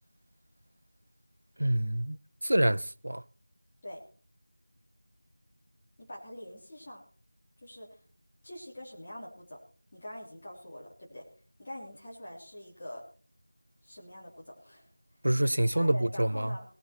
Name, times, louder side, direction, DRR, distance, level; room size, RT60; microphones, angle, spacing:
voice 1, 1.6-3.2 15.2-16.6, right 1 dB, 50° right, 0.5 m, -27 dB
voice 2, 6.0-7.0 7.6-8.0 8.4-9.6 9.9-11.2 11.6-13.0 13.8-14.8 15.7-16.6, left 1 dB, 20° left, 3.3 m, -44 dB
19.0 x 8.2 x 4.4 m
figure-of-eight pair, 170°, 0 cm